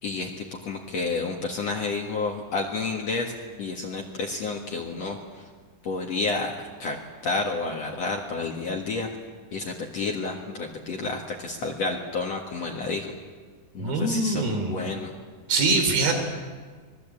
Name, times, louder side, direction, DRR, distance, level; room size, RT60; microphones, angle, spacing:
voice 1, 0.0-3.3 3.6-5.5 5.8-7.0 7.2-9.1 9.5-13.1 13.7-15.1, left 3 dB, 55° left, 1 dB, 2.5 m, -30 dB
voice 2, 13.8-14.7 15.5-16.1, right 3 dB, 90° right, 5 dB, 5.2 m, -23 dB
25.5 x 20.5 x 8.6 m, 1.5 s
omnidirectional pair, 4.1 m